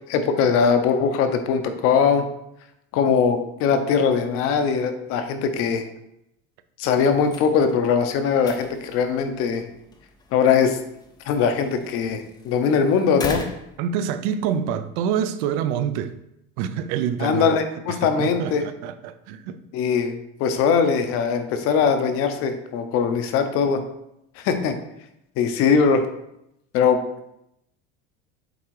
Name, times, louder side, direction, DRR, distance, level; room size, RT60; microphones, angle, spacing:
voice 1, 0.1-2.2 2.9-5.8 6.8-9.7 10.3-10.8 11.3-13.4 17.2-18.6 19.7-23.8 24.4-24.7 25.4-26.0 26.7-27.0, left 6 dB, 45° left, 0.8 m, -21 dB
sound 1, 7.1-14.6, left 3 dB, 15° left, 0.4 m, -40 dB
voice 2, 13.8-16.1 16.6-17.5 17.9-19.6, right 8 dB, 70° right, 0.6 m, -26 dB
8.0 x 3.6 x 4.7 m
cardioid pair, 170°, 31 cm